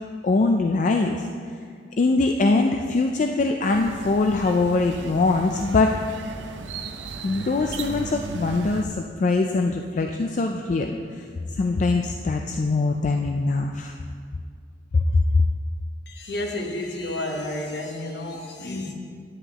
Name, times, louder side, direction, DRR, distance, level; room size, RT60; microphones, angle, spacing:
voice 1, 0.2-1.3 2.0-5.9 7.2-13.9 14.9-15.2, left 3 dB, 45° left, 3 dB, 0.4 m, -22 dB
sound 1, 3.6-8.8, right 3 dB, 80° right, 0.6 m, -36 dB
voice 2, 16.1-18.9, left 1 dB, 65° left, 1 dB, 1.1 m, -31 dB
10.0 x 9.3 x 3.0 m, 2.1 s
head